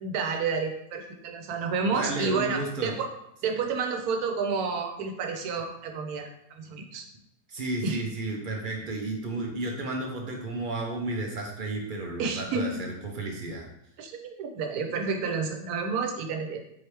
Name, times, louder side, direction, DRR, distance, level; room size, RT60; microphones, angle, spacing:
voice 1, 0.0-3.1 3.4-6.3 6.6-7.0 7.8-8.0 12.2-12.8 14.0-16.6, right 5 dB, 90° right, 4 dB, 1.2 m, -30 dB
voice 2, 1.9-3.0 7.5-13.7, right 2 dB, 60° right, 1 dB, 0.5 m, -33 dB
4.6 x 3.3 x 3.0 m, 0.78 s
omnidirectional pair, 1.5 m